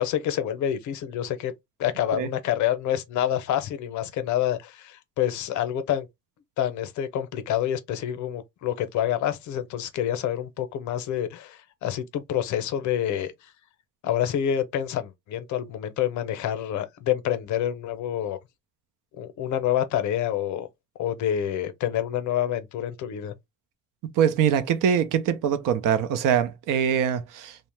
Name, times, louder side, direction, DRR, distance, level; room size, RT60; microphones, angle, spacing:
voice 1, 0.0-1.5 1.8-6.1 6.6-13.3 14.0-18.4 19.2-20.7 21.0-23.3, left 10 dB, 65° left, 0.6 m, -27 dB
voice 2, 24.2-27.6, right 8 dB, 80° right, 0.6 m, -23 dB
2.8 x 2.1 x 3.2 m
cardioid pair, 170°, 31 cm